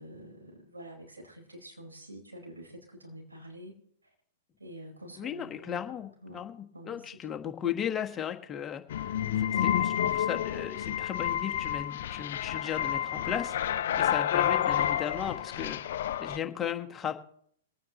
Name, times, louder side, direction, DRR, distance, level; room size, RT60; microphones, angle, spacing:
voice 1, 0.0-3.8 4.6-6.5 6.7-7.4 13.9-14.0, right 1 dB, 90° right, 0 dB, 4.7 m, -48 dB
voice 2, 5.2-15.9 16.2-17.1, left 9 dB, 20° left, 4 dB, 1.4 m, -36 dB
sound 1, 8.9-16.4, left 10 dB, 60° left, 0.6 m, -29 dB
24.0 x 9.3 x 3.1 m, 0.66 s
hypercardioid pair, 110°, 0 cm